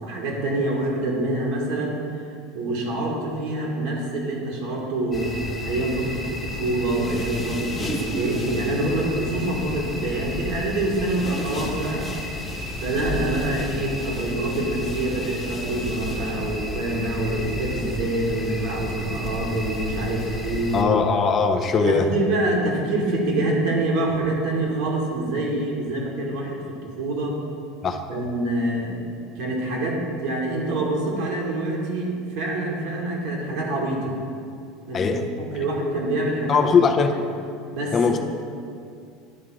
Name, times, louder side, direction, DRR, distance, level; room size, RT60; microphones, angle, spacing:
voice 1, 0.0-2.0 2.5-5.3 5.6-12.1 12.8-21.0 21.8-27.4 28.1-29.1 29.4-34.1 34.9-36.9 37.7-38.2, right 2 dB, 70° right, -2 dB, 2.0 m, -26 dB
sound 1, 5.1-20.8, left 2 dB, 20° left, 1.3 m, -32 dB
voice 2, 20.7-22.1 27.8-28.0 34.9-35.3 36.5-37.2 37.9-38.2, left 5 dB, 35° left, 4 dB, 0.7 m, -20 dB
10.5 x 3.7 x 6.0 m, 2.4 s
supercardioid pair, 110°, 0 cm